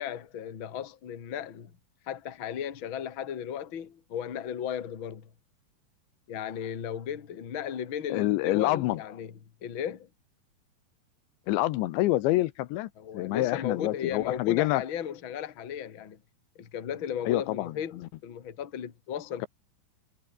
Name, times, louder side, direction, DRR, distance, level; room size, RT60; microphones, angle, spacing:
voice 1, 0.0-1.7 2.1-5.3 6.3-9.3 9.6-10.1 13.0-16.2 16.6-19.5, left 9 dB, 40° left, 2.0 m, -35 dB
voice 2, 8.1-9.0 11.5-14.8 17.3-17.7, left 17 dB, 80° left, 3.1 m, -27 dB
omnidirectional pair, 5.3 m